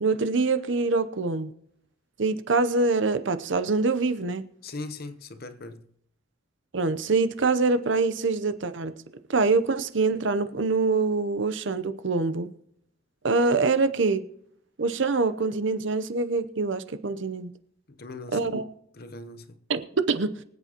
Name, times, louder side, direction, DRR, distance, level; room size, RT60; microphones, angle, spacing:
voice 1, 0.0-1.5 2.2-4.4 6.7-9.0 9.3-12.5 13.2-14.2 14.8-17.5 18.3-18.7 19.7-20.4, right 3 dB, 65° right, 0.7 m, -25 dB
voice 2, 4.6-5.9 17.9-18.5 18.9-19.6, left 2 dB, 50° left, 0.8 m, -39 dB
24.0 x 8.2 x 2.9 m
head